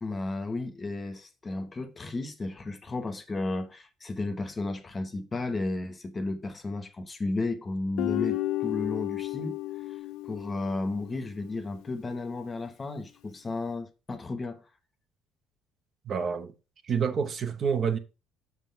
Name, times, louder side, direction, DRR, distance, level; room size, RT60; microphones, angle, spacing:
voice 1, 0.0-9.6 10.3-14.6, left 2 dB, 25° left, 0.8 m, -33 dB
Guitar, 8.0-11.3, left 16 dB, 85° left, 0.5 m, -32 dB
voice 2, 16.1-16.5 16.8-18.0, right 6 dB, 45° right, 0.8 m, -28 dB
6.2 x 3.7 x 5.6 m
cardioid pair, 120°, 0 cm